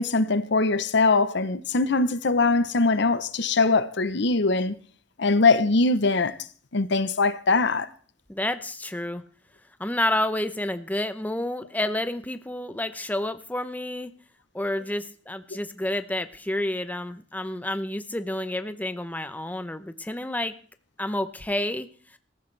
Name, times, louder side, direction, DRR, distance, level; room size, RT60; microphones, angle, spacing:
voice 1, 0.0-4.8 5.2-6.4 6.7-7.9, left 3 dB, 65° left, 0.8 m, -22 dB
voice 2, 8.3-9.2 9.8-14.1 14.5-20.5 21.0-21.9, left 1 dB, 10° left, 0.7 m, -29 dB
18.0 x 14.5 x 3.3 m
head